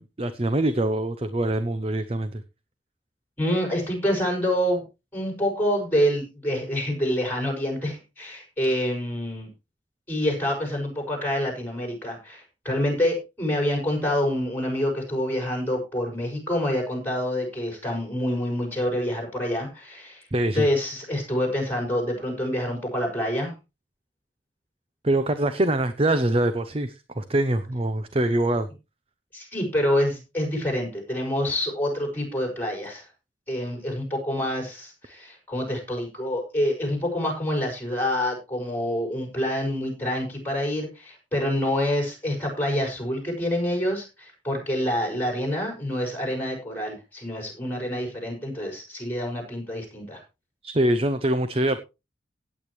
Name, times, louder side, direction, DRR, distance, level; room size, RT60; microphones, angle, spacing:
voice 1, 0.0-2.4 20.3-20.7 25.0-28.7 50.6-51.8, right 1 dB, 30° right, 11 dB, 0.7 m, -24 dB
voice 2, 3.4-4.8 5.1-9.5 10.1-20.3 20.5-23.5 29.3-33.1 33.5-50.2, equal, 10° left, 1 dB, 6.1 m, -27 dB
17.0 x 8.7 x 3.2 m, 0.28 s
head